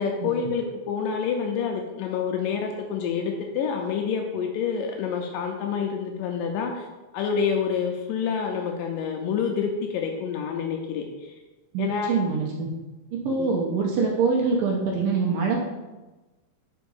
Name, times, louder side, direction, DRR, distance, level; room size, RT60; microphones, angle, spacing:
voice 1, 0.0-6.9 7.1-11.4 11.8-12.3 13.3-13.5, left 6 dB, 80° left, 3 dB, 2.2 m, -28 dB
voice 2, 11.7-12.7 13.1-15.6, right 4 dB, 80° right, -1 dB, 2.4 m, -24 dB
5.2 x 4.7 x 5.3 m, 1.1 s
omnidirectional pair, 4.2 m